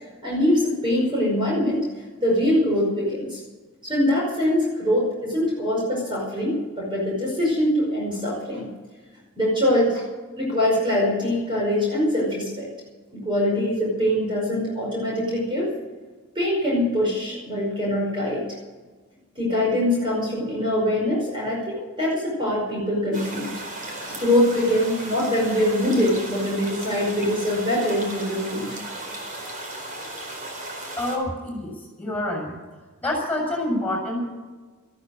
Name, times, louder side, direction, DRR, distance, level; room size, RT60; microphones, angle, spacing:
voice 1, 0.2-1.8 2.2-3.4 3.8-8.7 9.4-10.0 10.4-12.7 13.1-15.7 16.4-18.4 19.4-23.5 24.1-28.8, left 1 dB, 25° right, -4 dB, 5.2 m, -23 dB
sound 1, 23.1-31.2, right 1 dB, 40° right, 4.1 m, -35 dB
voice 2, 30.9-32.5 33.0-34.2, left 1 dB, 10° left, 0 dB, 6.9 m, -27 dB
14.5 x 13.5 x 6.5 m, 1.3 s
head